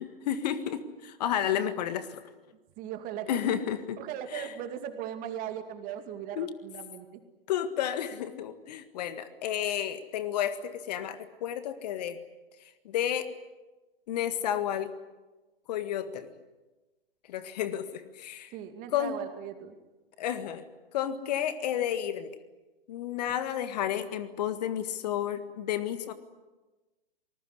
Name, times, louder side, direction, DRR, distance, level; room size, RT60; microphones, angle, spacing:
voice 1, 0.0-2.2 3.3-4.0 4.3-4.5 6.4-6.5 7.5-12.2 12.9-13.3 14.1-14.9 15.7-16.3 17.3-18.5 18.9-19.1 20.2-20.6 20.9-22.4 22.9-26.1, left 10 dB, 45° left, 12 dB, 1.7 m, -31 dB
voice 2, 2.8-3.7 4.0-7.2 18.5-19.7, right 10 dB, 30° right, 8 dB, 2.4 m, -38 dB
26.5 x 20.0 x 9.7 m, 1.2 s
figure-of-eight pair, 115°, 29 cm